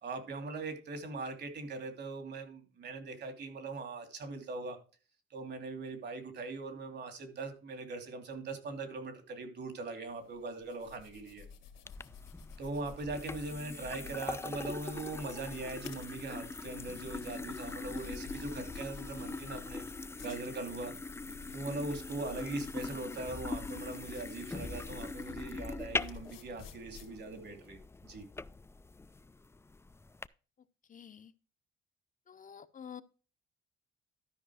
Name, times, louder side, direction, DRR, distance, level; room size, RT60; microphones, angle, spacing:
voice 1, 0.0-4.8 5.3-11.4 12.6-19.8 20.2-20.9 21.5-28.3, right 3 dB, 60° right, 7 dB, 2.9 m, -41 dB
sound 1, 10.1-27.6, left 6 dB, 80° left, 1.7 m, -53 dB
sound 2, 11.8-30.3, left 3 dB, 15° left, 0.4 m, -42 dB
voice 2, 30.9-31.3 32.3-33.0, left 8 dB, 40° left, 10 dB, 0.8 m, -48 dB
12.5 x 5.3 x 4.8 m, 0.35 s
cardioid pair, 90°, 20 cm